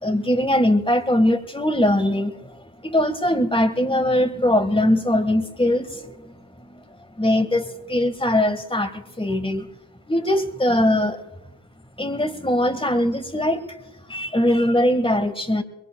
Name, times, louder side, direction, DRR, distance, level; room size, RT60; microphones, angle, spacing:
voice 1, 0.0-6.3 6.7-6.8 7.2-9.7 10.1-11.2 12.0-13.8 14.1-15.6, left 1 dB, 10° left, 10 dB, 1.5 m, -21 dB
23.0 x 22.0 x 2.2 m, 1.0 s
cardioid pair, 50°, 46 cm